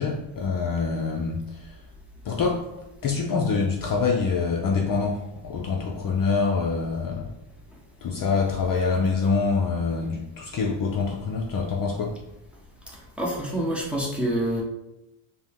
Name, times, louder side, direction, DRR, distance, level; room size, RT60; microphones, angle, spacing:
voice 1, 0.0-1.7 2.2-2.7 3.0-7.3 8.0-12.2, left 4 dB, 45° left, 0 dB, 0.6 m, -25 dB
voice 2, 12.9-14.6, right 1 dB, ahead, -4 dB, 1.1 m, -27 dB
5.1 x 2.2 x 3.6 m, 0.92 s
cardioid pair, 95°, 49 cm